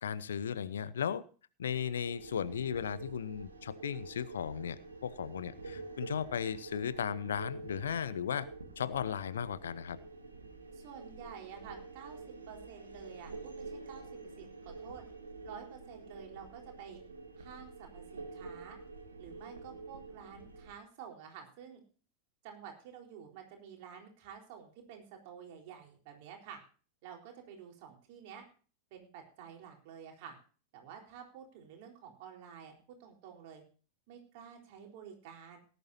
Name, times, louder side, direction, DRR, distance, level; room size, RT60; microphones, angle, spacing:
voice 1, 0.0-1.2 1.6-8.5 8.8-10.0, left 8 dB, 65° left, 17 dB, 0.8 m, -36 dB
sound 1, 1.7-20.7, right 3 dB, 75° right, 1.9 m, -48 dB
voice 2, 10.7-15.0 15.4-17.0 17.4-18.8 19.2-21.8 22.4-26.6 27.0-28.4 28.9-30.3 30.7-33.6 34.1-35.6, right 8 dB, 50° right, 2 dB, 4.0 m, -50 dB
18.5 x 11.0 x 2.8 m, 0.38 s
figure-of-eight pair, 90°, 0 cm